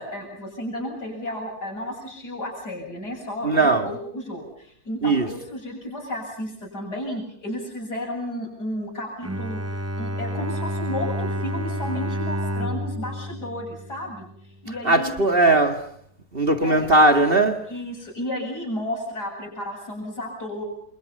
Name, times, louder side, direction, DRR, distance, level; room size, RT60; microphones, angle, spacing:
voice 1, 0.0-14.3 14.6-15.1 16.6-16.9 17.7-20.6, left 1 dB, 60° left, 8.3 m, -33 dB
voice 2, 3.4-3.9 5.0-5.3 14.8-15.9 16.3-17.7, right 2 dB, 30° right, 2.3 m, -19 dB
Bowed string instrument, 9.2-14.5, equal, 10° right, 0.7 m, -29 dB
29.5 x 27.5 x 5.6 m
omnidirectional pair, 1.9 m